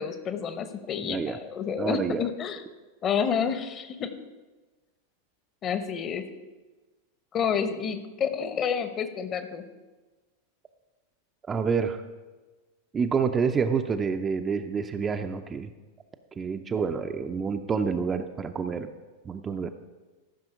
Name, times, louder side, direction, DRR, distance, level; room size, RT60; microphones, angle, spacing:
voice 1, 0.0-2.6 3.0-4.1 5.6-6.2 7.3-9.6, left 7 dB, 30° left, 10 dB, 0.9 m, -29 dB
voice 2, 1.0-1.4 1.8-2.3 11.5-12.0 12.9-15.7 16.4-18.9 19.3-19.7, right 5 dB, 20° right, 7 dB, 0.5 m, -28 dB
14.0 x 6.1 x 4.9 m, 1.2 s
figure-of-eight pair, 90°, 0 cm